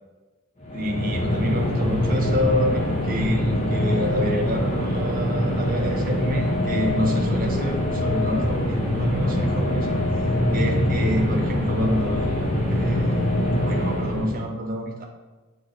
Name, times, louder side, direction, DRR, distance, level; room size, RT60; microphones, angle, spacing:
sound 1, 0.6-14.5, left 1 dB, 30° left, 1.2 m, -23 dB
voice 1, 0.7-10.0 10.5-13.3 13.6-15.0, equal, 40° right, 0 dB, 0.9 m, -28 dB
8.0 x 3.3 x 4.0 m, 1.2 s
head